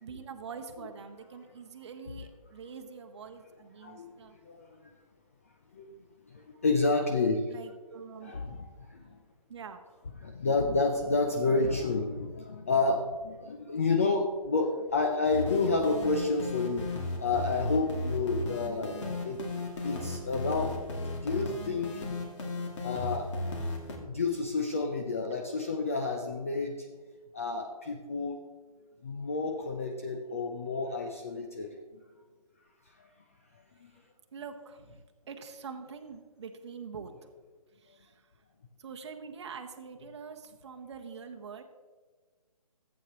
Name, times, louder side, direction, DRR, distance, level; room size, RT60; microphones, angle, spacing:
voice 1, 0.0-4.3 7.5-8.3 9.1-9.2 9.5-9.8 19.2-19.3 34.3-35.0 35.3-37.1 37.7-38.2 38.8-41.6, right 5 dB, 45° right, 4 dB, 0.9 m, -44 dB
voice 2, 3.8-4.9 5.7-5.9 6.3-7.4 8.2-9.2 10.2-19.4 19.8-22.0 22.8-23.5 24.0-26.9 27.3-28.5 29.0-32.0 33.0-33.1 33.5-34.0 37.9-38.0, left 3 dB, 25° left, 3 dB, 0.4 m, -30 dB
sound 1, 15.3-24.0, left 2 dB, 50° left, 2.0 m, -36 dB
14.5 x 8.3 x 2.9 m, 1.4 s
hypercardioid pair, 165°, 19 cm